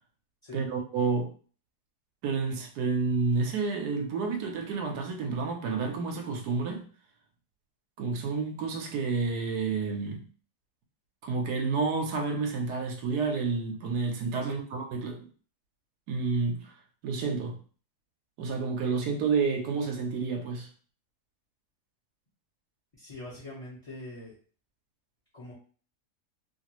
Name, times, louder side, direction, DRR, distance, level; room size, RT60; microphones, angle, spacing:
voice 1, 0.5-1.3 2.2-6.8 8.0-10.2 11.2-15.3 16.1-16.7 17.0-17.6 18.4-20.7, right 4 dB, 85° right, 3 dB, 1.2 m, -30 dB
voice 2, 23.0-24.3 25.3-25.5, left 2 dB, 30° left, -7 dB, 0.7 m, -43 dB
2.9 x 2.5 x 2.9 m, 0.42 s
omnidirectional pair, 1.7 m